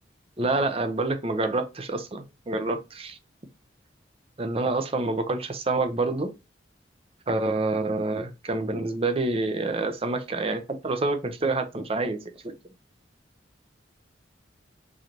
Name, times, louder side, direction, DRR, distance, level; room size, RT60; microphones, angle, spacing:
voice 1, 0.4-3.2 4.4-6.3 7.3-12.5, right 2 dB, 30° right, 0.6 m, -27 dB
3.8 x 3.2 x 2.9 m
head